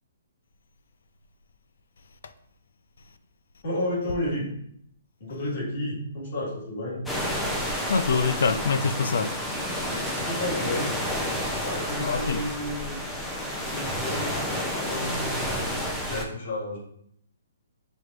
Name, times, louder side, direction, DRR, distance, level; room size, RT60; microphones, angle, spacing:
voice 1, 3.6-4.5 5.2-7.0 10.2-10.9 11.6-13.0 13.7-14.3 14.7-16.8, left 1 dB, 50° left, 1.8 m, -32 dB
sound 1, 7.1-16.2, equal, 5° left, 0.5 m, -30 dB
voice 2, 7.9-9.3 9.9-10.3 12.0-12.4, left 4 dB, 75° left, 0.4 m, -25 dB
6.2 x 3.2 x 2.5 m
hypercardioid pair, 165°, 0 cm